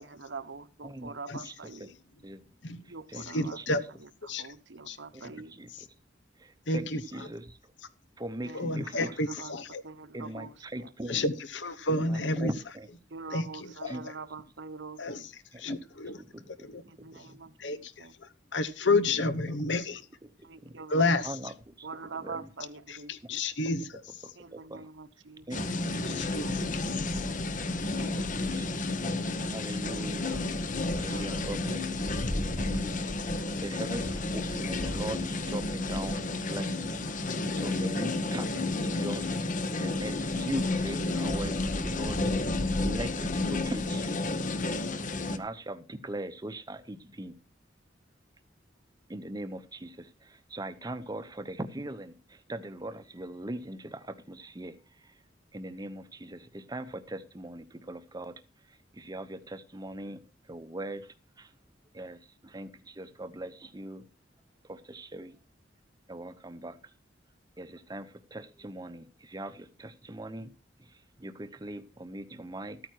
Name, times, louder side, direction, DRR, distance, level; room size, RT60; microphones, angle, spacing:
voice 1, 0.0-1.9 2.9-3.6 4.0-5.5 8.4-8.7 9.4-9.5 9.8-10.9 13.1-15.3 16.8-18.1 20.4-21.3 21.8-23.4 24.4-25.7 26.0-26.6 27.9-29.0 31.0-31.5, right 4 dB, 85° right, 12 dB, 1.1 m, -45 dB
voice 2, 1.4-1.9 2.2-2.4 2.8-3.8 5.1-5.9 6.4-7.6 8.2-9.1 9.4-9.5 10.1-11.2 11.9-12.9 13.9-14.0 15.5-15.8 16.2-16.7 17.0-17.4 19.1-19.6 20.2-20.8 21.2-21.9 22.2-22.5 24.5-24.9 25.5-25.6 25.9-26.2 27.9-28.8 29.5-30.5 30.9-44.2 45.3-47.4 49.1-55.2 55.5-58.4 58.7-61.5 61.9-64.0 64.6-65.4 66.1-66.9 67.6-70.5 70.8-72.8, right 1 dB, 20° right, 10 dB, 0.8 m, -41 dB
voice 3, 3.2-3.8 4.2-4.4 4.9-5.0 5.8-5.9 6.7-7.0 8.5-9.8 11.1-12.5 13.3-13.9 15.0-15.3 15.6-16.2 16.6-16.8 17.6-18.1 18.5-20.0 20.9-21.3 22.9-24.0 26.1-26.6 27.0-27.2, left 2 dB, 75° left, 14 dB, 1.1 m, -30 dB
sound 1, 25.5-45.4, left 2 dB, 45° left, 1.0 m, -31 dB
13.0 x 9.1 x 4.6 m, 0.33 s
head